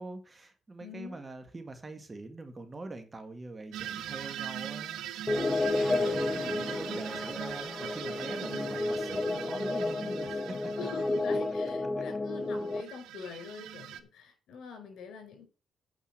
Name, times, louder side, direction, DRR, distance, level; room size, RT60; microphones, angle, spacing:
voice 1, 0.0-5.0 5.4-10.7, right 2 dB, 25° right, 1.9 m, -43 dB
voice 2, 0.8-1.2 5.8-6.2 8.3-8.6 10.8-15.5, left 5 dB, 70° left, 4.8 m, -45 dB
sound 1, 3.7-11.6 12.7-14.0, right 11 dB, 85° right, 0.9 m, -41 dB
sound 2, 5.3-12.8, left 2 dB, 15° left, 1.1 m, -31 dB
8.9 x 5.5 x 6.3 m
cardioid pair, 90°, 0 cm